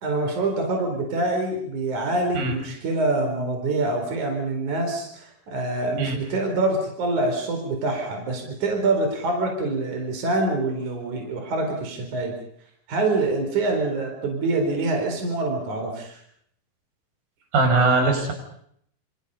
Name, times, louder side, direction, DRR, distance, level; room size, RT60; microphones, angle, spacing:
voice 1, 0.0-12.4 12.9-16.2, right 2 dB, 60° right, 3 dB, 5.7 m, -25 dB
voice 2, 17.5-18.3, right 3 dB, 85° right, 5 dB, 7.7 m, -20 dB
29.0 x 29.0 x 5.6 m, 0.68 s
omnidirectional pair, 3.9 m